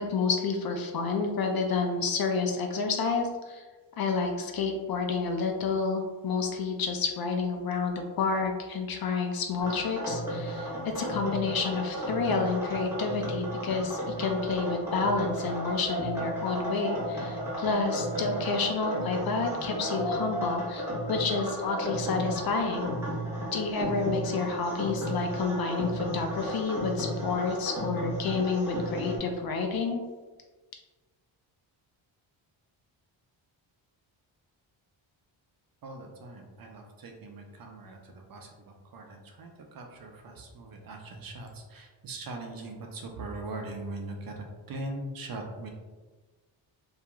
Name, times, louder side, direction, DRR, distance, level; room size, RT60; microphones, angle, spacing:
voice 1, 0.0-3.6 4.0-22.9 23.5-30.0, left 4 dB, 50° left, 3 dB, 0.5 m, -29 dB
sound 1, 9.6-29.2, equal, 5° right, 0.9 m, -34 dB
voice 2, 35.8-45.7, right 2 dB, 50° right, 2 dB, 0.5 m, -41 dB
2.8 x 2.3 x 2.3 m, 1.3 s
cardioid pair, 85°, 48 cm